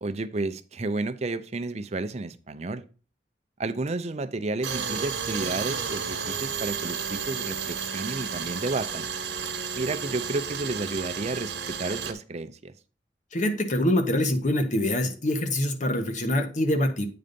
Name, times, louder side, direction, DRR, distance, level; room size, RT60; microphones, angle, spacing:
voice 1, 0.0-2.8 3.6-9.0 9.7-11.5 11.8-12.7, right 2 dB, 40° right, 0.6 m, -31 dB
Tools, 4.6-12.1, right 6 dB, 70° right, 1.2 m, -32 dB
voice 2, 13.3-17.1, left 1 dB, 45° left, 1.1 m, -25 dB
8.7 x 4.0 x 5.2 m
head